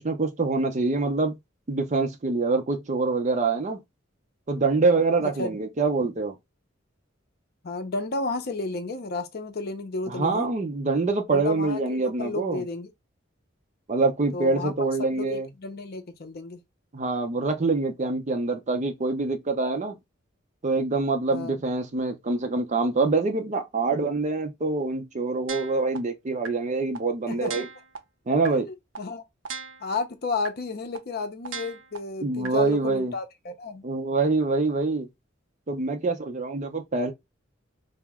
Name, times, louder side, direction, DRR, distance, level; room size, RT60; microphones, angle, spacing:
voice 1, 0.0-1.3 1.7-3.8 4.5-6.4 10.1-12.6 13.9-15.5 16.9-20.0 20.6-27.7 28.3-28.7 32.2-33.1 33.8-35.1 35.7-37.1, right 3 dB, 40° right, 0.6 m, -25 dB
voice 2, 7.6-10.5 11.3-12.9 14.3-14.7 15.1-16.6 21.3-21.6 27.3-27.7 28.7-29.2 29.8-33.8, left 3 dB, 55° left, 0.6 m, -32 dB
sound 1, 25.5-26.0 26.4-26.5 26.9-27.0 27.4-28.0 28.4-28.5 28.9-29.0 29.4-30.0 30.4-30.5 30.9-31.0 31.4-32.0 32.4-32.5, right 6 dB, 80° right, 0.6 m, -36 dB
2.9 x 2.1 x 3.5 m
head